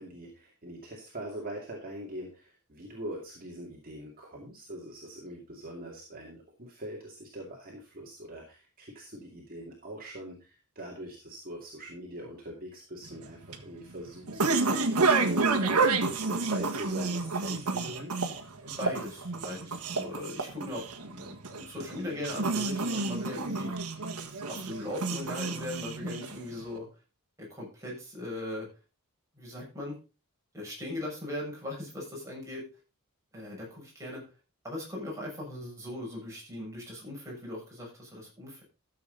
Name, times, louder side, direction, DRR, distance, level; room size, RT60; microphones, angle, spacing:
voice 1, 0.0-14.7 14.9-18.1, right 1 dB, 40° right, -2 dB, 2.5 m, -42 dB
sound 1, 13.1-26.6, right 3 dB, 85° right, 1.6 m, -30 dB
voice 2, 18.6-23.7 24.5-26.9 27.4-28.7 29.3-30.0 30.5-32.6 33.3-34.2 34.6-38.6, left 1 dB, 15° right, -3 dB, 6.6 m, -39 dB
13.5 x 7.6 x 3.9 m, 0.32 s
head